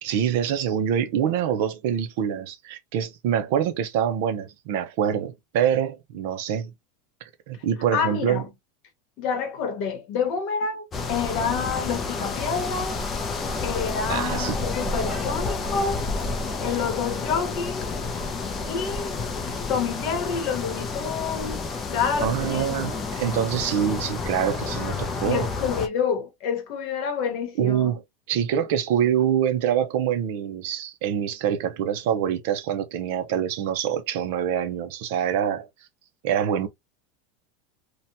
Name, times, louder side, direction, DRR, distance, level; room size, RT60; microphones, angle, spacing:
voice 1, 0.0-6.7 7.5-8.4 14.1-14.6 22.2-25.5 27.6-28.0 28.3-35.7 36.2-36.7, right 9 dB, 55° right, 0.5 m, -25 dB
voice 2, 7.9-8.5 9.2-13.0 13.6-16.0 16.6-17.9 18.7-19.2 19.7-23.1 25.2-27.9, left 6 dB, 40° left, 0.9 m, -28 dB
sound 1, 10.9-25.9, left 3 dB, 20° left, 0.5 m, -30 dB
2.8 x 2.2 x 2.6 m
supercardioid pair, 170°, 0 cm